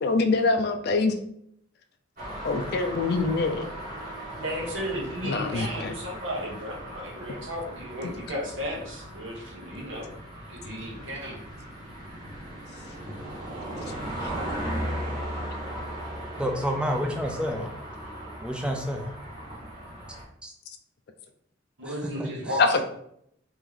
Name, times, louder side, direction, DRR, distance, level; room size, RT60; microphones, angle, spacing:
voice 1, 0.0-1.1 2.4-3.7 5.3-5.9 22.6-22.8, left 3 dB, 55° left, 6 dB, 0.4 m, -24 dB
sound 1, 2.2-20.2, right 1 dB, 45° right, 1.4 m, -37 dB
voice 2, 4.4-10.1 10.5-11.4 21.8-22.8, equal, 70° right, -3 dB, 1.2 m, -34 dB
voice 3, 16.4-17.7 18.4-19.1 20.4-20.5 21.8-22.6, equal, 5° right, 2 dB, 0.4 m, -30 dB
3.1 x 3.0 x 3.7 m, 0.72 s
head